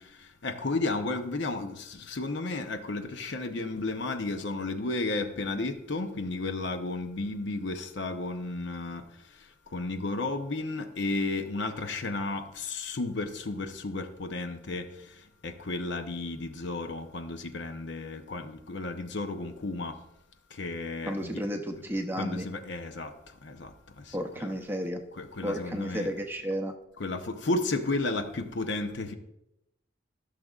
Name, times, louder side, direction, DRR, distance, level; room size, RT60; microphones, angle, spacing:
voice 1, 0.0-9.0 9.7-14.9 15.4-20.0 20.5-21.4 22.1-23.1 23.4-24.5 25.1-26.1 27.0-29.1, left 2 dB, 60° left, 0.7 m, -33 dB
voice 2, 21.0-22.4 24.1-25.0 25.4-26.7, equal, 10° right, 0.6 m, -32 dB
14.5 x 6.5 x 2.4 m
head